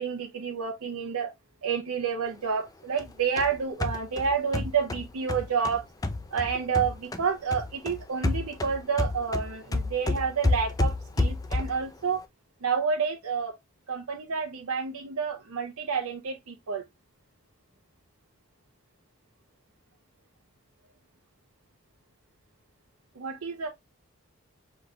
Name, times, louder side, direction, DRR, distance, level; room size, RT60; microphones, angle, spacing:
voice 1, 0.0-1.3 1.6-5.8 6.3-12.2 12.6-13.5 13.9-16.8 23.2-23.7, right 6 dB, 85° right, 0.7 m, -29 dB
sound 1, 3.0-7.3 7.5-11.9, left 2 dB, 15° left, 0.4 m, -30 dB
5.2 x 3.9 x 2.3 m
head